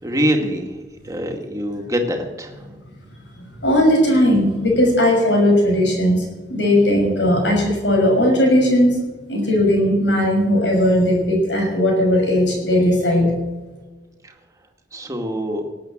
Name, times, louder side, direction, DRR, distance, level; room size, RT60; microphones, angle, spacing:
voice 1, 0.0-2.7 14.2-14.3 14.9-15.6, equal, 20° right, 2 dB, 2.2 m, -24 dB
voice 2, 3.6-6.2 6.5-9.0 9.3-13.4, left 1 dB, 85° left, 1 dB, 6.4 m, -17 dB
19.0 x 8.7 x 7.5 m, 1.2 s
head